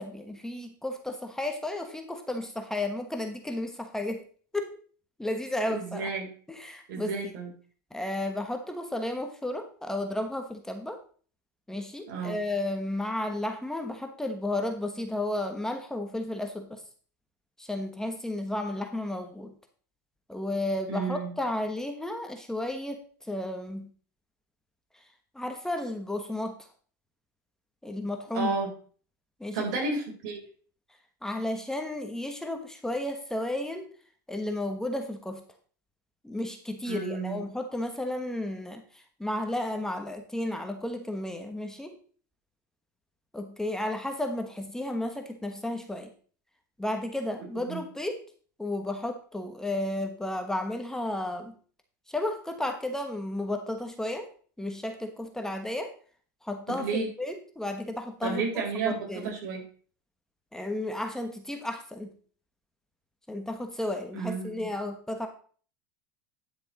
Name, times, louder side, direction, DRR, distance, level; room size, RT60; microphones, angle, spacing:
voice 1, 0.0-4.2 4.5-4.7 5.2-6.1 6.5-7.1 7.9-11.0 11.7-16.8 17.6-19.5 20.3-23.9 25.3-26.6 27.8-28.5 29.4-29.7 31.2-33.8 34.3-35.4 36.2-41.9 43.3-46.1 46.8-48.2 48.6-51.6 52.1-54.3 54.6-55.9 56.4-59.3 60.5-62.1 63.3-65.3, left 1 dB, 5° left, 5 dB, 1.2 m, -33 dB
voice 2, 5.7-6.3 6.9-7.5 12.1-12.3 20.9-21.3 28.3-28.7 29.5-30.4 36.9-37.4 47.7-47.8 56.7-57.1 58.2-59.6 64.1-64.7, right 4 dB, 70° right, 2 dB, 4.0 m, -32 dB
10.5 x 6.7 x 4.1 m, 0.43 s
supercardioid pair, 120°, 10 cm